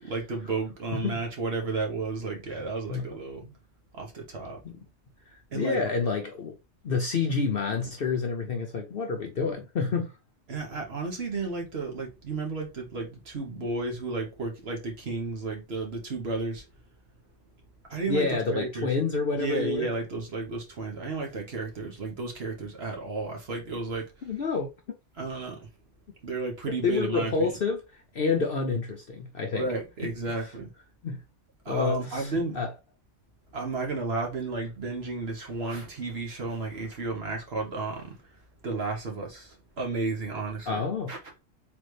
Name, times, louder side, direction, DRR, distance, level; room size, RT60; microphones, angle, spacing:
voice 1, 0.0-3.4 3.9-4.6 5.5-5.8 10.5-16.6 17.9-18.9 19.3-24.3 25.2-25.7 26.2-27.5 29.5-30.7 31.6-32.6 33.5-38.3 38.6-41.2, right 3 dB, 50° right, 1.3 m, -33 dB
voice 2, 5.5-6.5 6.8-10.1 18.1-19.9 24.2-24.7 26.8-29.7 30.0-30.1 31.0-31.2 31.7-32.7 40.7-41.1, left 4 dB, 55° left, 0.7 m, -28 dB
3.9 x 3.2 x 3.2 m
omnidirectional pair, 1.4 m